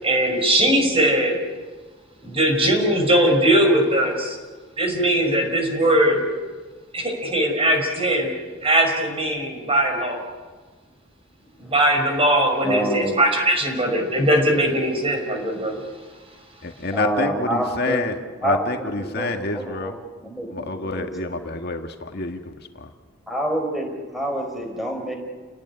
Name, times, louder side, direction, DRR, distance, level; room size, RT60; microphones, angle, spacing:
voice 1, 0.0-1.4 2.2-4.4 4.8-6.2 6.9-8.3 8.6-10.2 11.6-15.8, right 1 dB, 30° right, 3 dB, 5.4 m, -20 dB
voice 2, 12.6-13.2 16.9-18.1 18.4-19.9 20.2-21.4 23.3-25.2, right 1 dB, ahead, 3 dB, 4.8 m, -27 dB
voice 3, 16.6-18.2 18.4-19.9 20.5-22.9, left 2 dB, 55° left, 5 dB, 1.8 m, -28 dB
29.5 x 19.0 x 9.9 m, 1.4 s
head